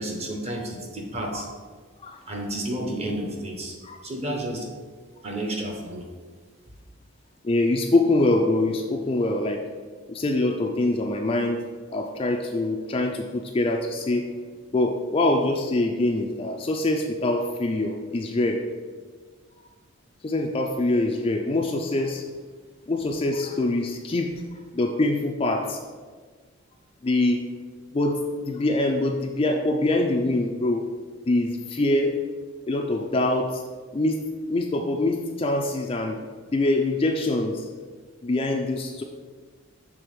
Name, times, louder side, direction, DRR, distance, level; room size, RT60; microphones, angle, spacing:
voice 1, 0.0-1.5 2.3-3.8 4.0-4.7 5.2-6.1, right 1 dB, 30° right, 1 dB, 0.8 m, -31 dB
voice 2, 7.4-9.6 10.1-11.6 11.9-14.3 14.7-18.6 20.2-22.2 22.9-24.3 24.7-25.8 27.0-27.4 27.9-30.8 31.3-32.1 32.7-33.6 33.9-34.2 34.5-36.2 36.5-37.7 38.2-39.0, left 2 dB, 25° left, 3 dB, 0.3 m, -24 dB
6.1 x 3.4 x 5.1 m, 1.5 s
head